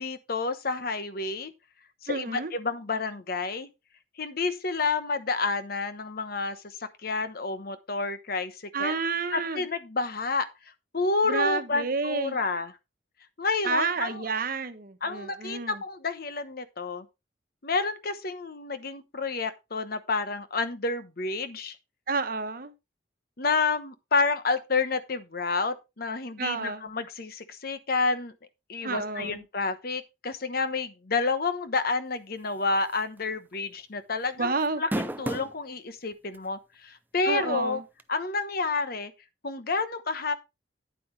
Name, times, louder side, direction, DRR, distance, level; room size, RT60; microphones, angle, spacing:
voice 1, 0.0-1.5 2.0-3.7 4.2-9.0 9.3-10.5 10.9-12.7 13.4-14.2 15.0-17.1 17.6-21.8 23.4-28.3 28.7-37.8 38.1-39.1 39.4-40.3, left 3 dB, 55° left, 1.0 m, -29 dB
voice 2, 2.1-2.5 8.7-9.7 11.2-12.4 13.6-15.8 22.1-22.7 26.4-26.9 28.8-29.4 34.4-34.8 37.2-37.8, right 4 dB, 50° right, 1.1 m, -30 dB
sound 1, 32.9-33.2 33.5-33.6 34.6-35.6 36.3-36.4 38.0-38.1, right 1 dB, 10° right, 0.5 m, -31 dB
9.3 x 8.6 x 3.2 m
head